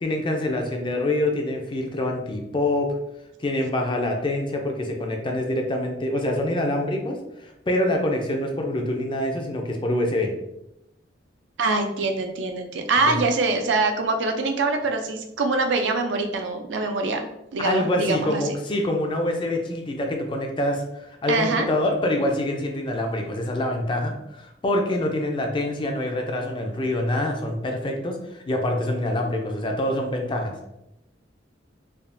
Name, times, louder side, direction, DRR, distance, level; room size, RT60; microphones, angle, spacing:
voice 1, 0.0-2.9 3.4-10.3 13.1-13.2 17.6-30.6, left 1 dB, 25° left, 3 dB, 0.4 m, -25 dB
voice 2, 11.6-18.4 21.3-21.7, right 3 dB, 80° right, 5 dB, 0.4 m, -24 dB
3.4 x 2.3 x 2.5 m, 0.88 s
head